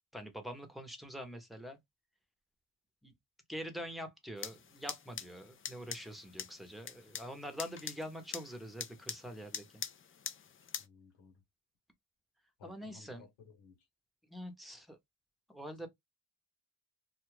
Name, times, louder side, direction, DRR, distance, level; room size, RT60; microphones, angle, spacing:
voice 1, 0.1-1.8 3.0-3.1 3.5-9.8 12.6-13.2 14.3-15.0 15.5-15.9, equal, ahead, 0.8 m, -45 dB
sound 1, 4.4-10.9, left 7 dB, 30° left, 0.4 m, -45 dB
voice 2, 10.8-11.4 12.6-13.7, left 5 dB, 85° left, 1.2 m, -58 dB
2.6 x 2.4 x 3.1 m
cardioid pair, 85°, 42 cm